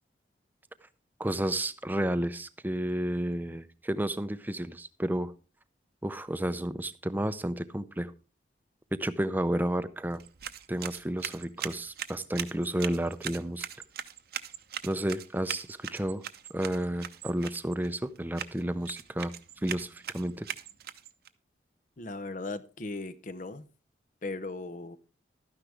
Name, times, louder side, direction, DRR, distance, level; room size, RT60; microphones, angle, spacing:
voice 1, 1.2-5.3 6.0-8.1 8.9-10.2 10.7-13.7 14.8-16.2 16.5-20.5, right 1 dB, 10° right, 0.5 m, -31 dB
sound 1, 10.1-21.3, right 9 dB, 55° right, 0.7 m, -41 dB
voice 2, 22.0-23.7 24.2-25.0, left 3 dB, 45° left, 0.7 m, -37 dB
12.5 x 9.9 x 3.4 m
head